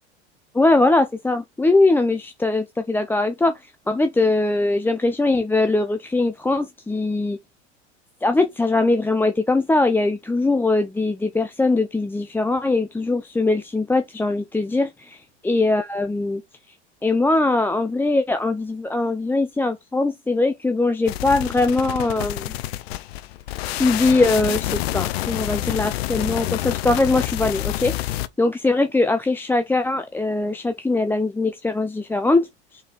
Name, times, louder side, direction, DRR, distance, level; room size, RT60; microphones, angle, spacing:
voice 1, 0.5-7.4 8.2-16.4 17.0-22.5 23.6-32.8, left 2 dB, 5° left, 0.6 m, -21 dB
sound 1, 21.1-28.3, left 15 dB, 65° left, 0.8 m, -28 dB
5.5 x 4.1 x 5.0 m
hypercardioid pair, 90°, 33 cm